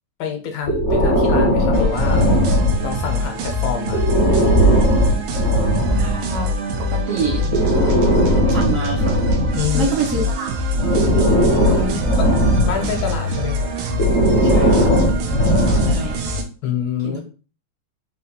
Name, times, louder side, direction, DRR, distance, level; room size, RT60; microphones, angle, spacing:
voice 1, 0.2-2.3 2.8-4.1 9.6-10.3 11.3-12.0 12.6-13.7 15.7-15.9 16.6-17.2, left 8 dB, 80° left, 4 dB, 1.4 m, -27 dB
Breathing, 0.6-3.1 3.8-6.2 7.3-10.1 10.7-13.0 13.9-16.2, equal, 60° left, 0.8 m, -18 dB
sound 1, 1.7-16.4, left 1 dB, 85° right, 1.4 m, -24 dB
voice 2, 5.9-6.5 6.8-7.5 8.5-9.2 9.7-10.5 11.8-12.0 12.6-13.0 14.4-14.9 15.7-16.2 17.0-17.2, right 4 dB, 65° right, -1 dB, 0.7 m, -26 dB
3.8 x 2.2 x 2.7 m, 0.36 s
omnidirectional pair, 2.2 m